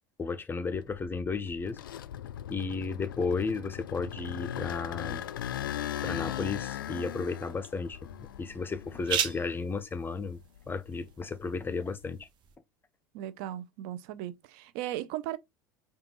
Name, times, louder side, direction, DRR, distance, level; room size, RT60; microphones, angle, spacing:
voice 1, 0.2-1.8 2.5-5.2 6.0-8.1 8.4-10.4 10.7-12.3, left 4 dB, 20° left, 0.6 m, -33 dB
sound 1, 0.7-9.8 10.2-12.1, left 11 dB, 80° left, 0.4 m, -39 dB
sound 2, 5.0-12.6, right 8 dB, 45° right, 0.9 m, -40 dB
voice 2, 13.1-15.4, right 13 dB, 60° right, 0.5 m, -37 dB
5.0 x 2.4 x 3.0 m
hypercardioid pair, 80°, 11 cm